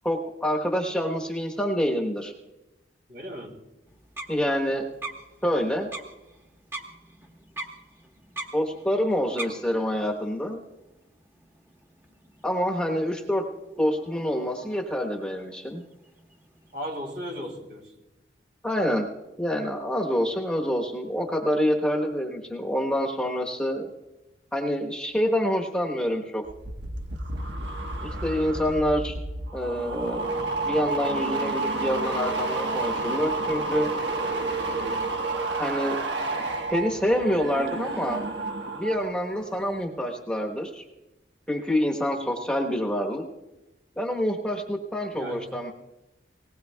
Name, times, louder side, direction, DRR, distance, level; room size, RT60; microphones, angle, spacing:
voice 1, 0.0-2.3 4.3-4.8 5.4-5.9 8.5-10.6 12.4-13.4 13.8-15.8 18.6-19.1 19.4-23.9 24.5-26.4 28.0-29.1 29.5-30.3 30.6-33.9 35.6-36.0 36.7-38.2 38.7-40.8 41.5-43.2 44.0-45.7, equal, 5° left, -1 dB, 1.1 m, -26 dB
voice 2, 3.1-3.6 16.7-17.9 45.1-45.5, equal, 60° right, 1 dB, 2.9 m, -36 dB
sound 1, 3.9-17.0, right 2 dB, 15° right, 1.3 m, -44 dB
sound 2, 26.4-39.1 39.4-39.8, right 2 dB, 80° right, 1.2 m, -30 dB
19.5 x 19.0 x 2.3 m, 1.0 s
head